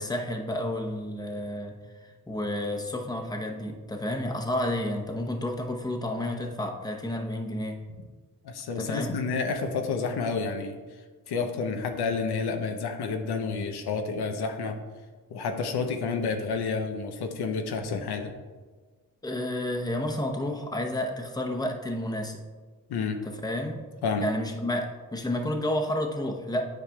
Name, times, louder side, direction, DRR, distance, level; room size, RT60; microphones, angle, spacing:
voice 1, 0.0-1.8 2.0-7.8 8.8-9.2 19.2-22.4 23.2-23.8 24.2-26.6, left 1 dB, 10° left, 2 dB, 0.8 m, -31 dB
voice 2, 8.4-10.8 11.3-14.8 15.3-18.3 22.9-23.2 24.0-24.3, left 4 dB, 90° left, 5 dB, 0.7 m, -30 dB
10.0 x 4.9 x 2.3 m, 1.4 s
cardioid pair, 70°, 38 cm